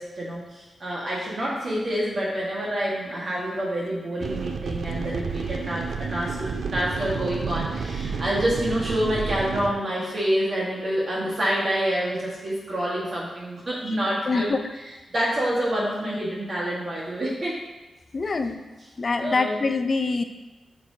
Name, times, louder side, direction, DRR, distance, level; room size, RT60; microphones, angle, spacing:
voice 1, 0.0-17.6 19.1-19.5, equal, 45° right, -6 dB, 1.5 m, -27 dB
sound 1, 4.2-9.7, right 5 dB, 70° right, 0.5 m, -30 dB
voice 2, 14.3-14.6 18.1-18.6 19.0-20.2, left 3 dB, 35° left, 7 dB, 0.5 m, -25 dB
8.6 x 6.0 x 2.8 m, 1.1 s
wide cardioid pair, 135°, 0 cm